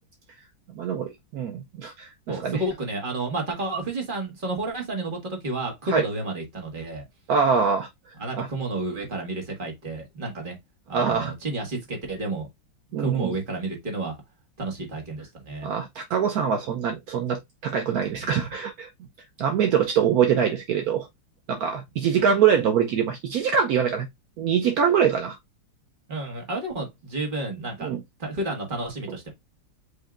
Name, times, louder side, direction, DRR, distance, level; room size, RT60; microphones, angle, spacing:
voice 1, 0.7-2.6 5.9-6.1 7.3-7.9 8.3-8.5 10.9-11.3 12.9-13.3 15.6-18.9 19.4-21.1 21.5-24.1 24.4-25.4 27.8-28.0, right 7 dB, 70° right, 0.9 m, -24 dB
voice 2, 2.3-7.0 8.2-10.6 10.9-12.5 13.0-14.2 14.6-15.7 18.0-18.4 26.1-27.9 28.2-29.3, right 2 dB, 30° right, 1.4 m, -31 dB
7.9 x 2.7 x 2.4 m
omnidirectional pair, 2.2 m